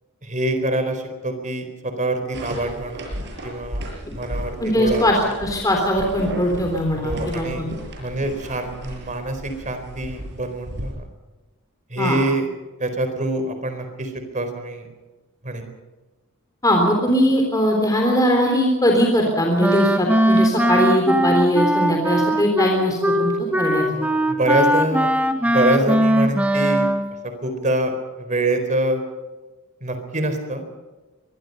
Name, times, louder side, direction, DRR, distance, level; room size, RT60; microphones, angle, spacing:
voice 1, 0.2-3.1 3.4-5.3 6.9-7.6 8.0-11.1 11.9-12.5 12.8-14.9 15.4-15.7 23.9-25.2 25.4-26.9 27.2-29.0 29.8-30.8, right 1 dB, 35° right, 8 dB, 4.2 m, -25 dB
sound 1, 2.3-10.9, equal, 55° right, 7.2 m, -34 dB
voice 2, 4.6-7.7 12.0-12.2 16.6-23.3 23.6-23.9, equal, 15° left, 1 dB, 3.5 m, -20 dB
Wind instrument woodwind instrument, 19.6-27.1, equal, 5° right, 1.6 m, -20 dB
24.5 x 22.0 x 5.5 m, 1.2 s
head